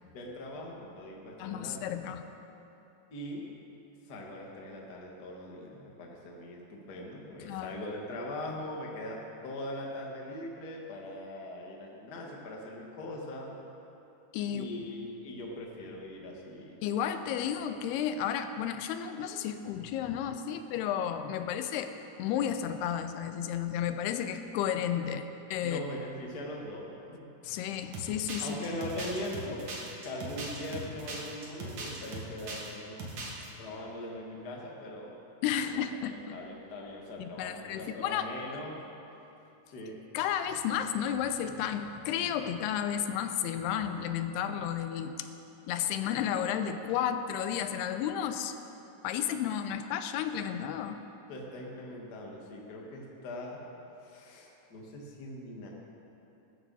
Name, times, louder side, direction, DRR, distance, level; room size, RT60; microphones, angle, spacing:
voice 1, 0.1-2.0 3.1-3.5 4.0-13.5 14.5-16.8 25.6-27.3 28.4-29.6 30.0-33.0 33.6-35.2 35.6-35.7 36.1-38.8 39.7-40.0 51.3-53.6 54.0-55.7, left 1 dB, 40° left, -1 dB, 1.4 m, -41 dB
voice 2, 1.4-2.2 7.4-7.8 14.3-14.7 16.8-21.9 22.2-25.8 27.4-28.8 35.4-36.4 37.2-38.3 40.1-45.3 45.7-48.5 49.0-51.0, left 9 dB, 90° left, 9 dB, 2.7 m, -32 dB
sound 1, 27.9-32.7 33.0-33.5, right 2 dB, 55° right, 2.9 m, -39 dB
20.0 x 12.5 x 4.1 m, 3.0 s
omnidirectional pair, 4.5 m